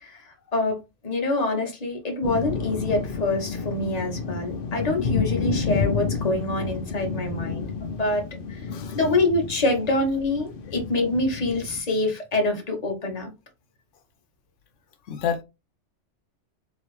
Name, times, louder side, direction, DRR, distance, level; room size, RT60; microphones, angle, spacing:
voice 1, 0.0-8.2 8.5-8.6 8.9-13.3, left 2 dB, 35° left, 1.2 m, -26 dB
sound 1, 2.2-11.8, left 5 dB, 55° left, 0.8 m, -30 dB
voice 2, 15.1-15.4, left 8 dB, 85° left, 1.0 m, -28 dB
3.8 x 3.0 x 3.1 m
omnidirectional pair, 1.2 m